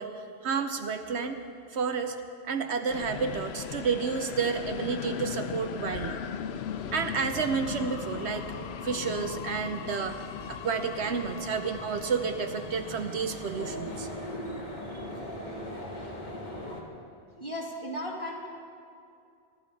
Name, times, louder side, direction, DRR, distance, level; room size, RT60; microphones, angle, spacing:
voice 1, 0.0-1.4 1.7-2.2 2.5-6.2 6.9-8.5 8.8-14.1 14.9-15.0, right 5 dB, 70° right, 7 dB, 1.0 m, -31 dB
sound 1, 2.9-14.4, left 9 dB, 70° left, 0.8 m, -38 dB
sound 2, 6.6-16.8, equal, 40° left, 1.9 m, -42 dB
voice 2, 17.4-18.5, equal, 25° left, -3 dB, 2.4 m, -35 dB
24.5 x 12.5 x 4.1 m, 2.4 s
omnidirectional pair, 1.2 m